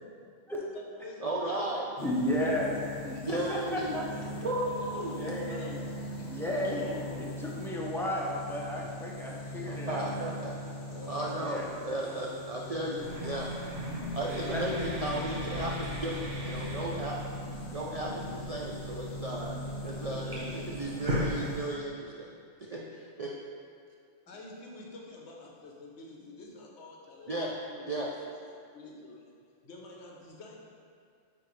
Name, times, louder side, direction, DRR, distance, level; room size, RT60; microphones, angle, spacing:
voice 1, 0.6-1.7 3.1-3.3 4.3-5.8 6.2-6.6 10.9-12.8 15.2-15.6 20.1-20.7 24.3-28.1 28.6-29.3 29.6-30.6, left 2 dB, 60° left, -2 dB, 1.1 m, -48 dB
voice 2, 1.2-1.8 3.2-4.0 4.4-5.1 9.6-10.5 11.1-13.5 14.1-15.7 16.0-17.2 17.7-19.5 19.8-22.3 22.6-23.4 27.3-27.5 27.9-28.1, right 1 dB, 75° right, -3 dB, 0.3 m, -35 dB
sound 1, 2.0-21.8, left 1 dB, 40° left, 0.8 m, -41 dB
voice 3, 2.0-4.0 5.1-10.1 11.4-11.7 14.5-14.6 21.0-21.3, left 1 dB, 5° left, -4 dB, 0.3 m, -34 dB
sound 2, 13.0-21.6, equal, 50° right, 1.4 m, -38 dB
8.8 x 3.8 x 3.2 m, 2.3 s
omnidirectional pair, 1.4 m